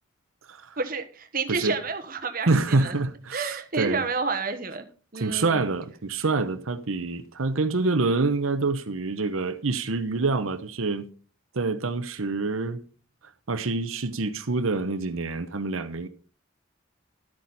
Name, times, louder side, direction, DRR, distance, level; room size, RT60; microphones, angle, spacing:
voice 1, 0.8-3.0 3.3-4.9 5.1-5.7, right 4 dB, 45° right, 1.1 m, -30 dB
voice 2, 2.5-4.0 5.1-11.1 11.5-12.8 13.5-16.1, right 3 dB, 85° right, 0.9 m, -26 dB
12.0 x 8.6 x 4.1 m
head